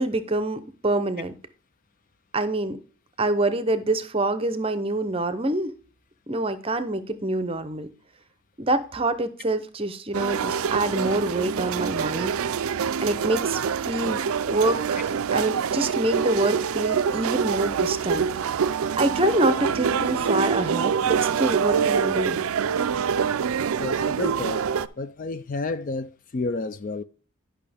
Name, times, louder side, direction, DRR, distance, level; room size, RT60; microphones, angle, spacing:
voice 1, 0.0-1.3 2.3-2.8 3.2-5.7 6.3-7.9 8.6-12.3 13.0-18.3 19.0-22.4, right 2 dB, 25° right, 0.6 m, -26 dB
sound 1, 10.1-24.9, right 6 dB, 70° right, 0.4 m, -25 dB
voice 2, 23.8-24.6 25.0-27.0, left 3 dB, 35° left, 0.3 m, -30 dB
11.0 x 5.7 x 3.4 m
head